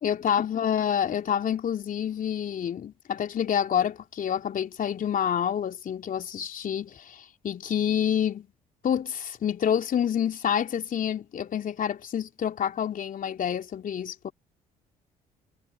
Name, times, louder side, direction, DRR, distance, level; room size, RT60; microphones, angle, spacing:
voice 1, 0.0-8.5 8.8-14.3, left 9 dB, 45° left, 3.3 m, -28 dB
figure-of-eight pair, 50°, 19 cm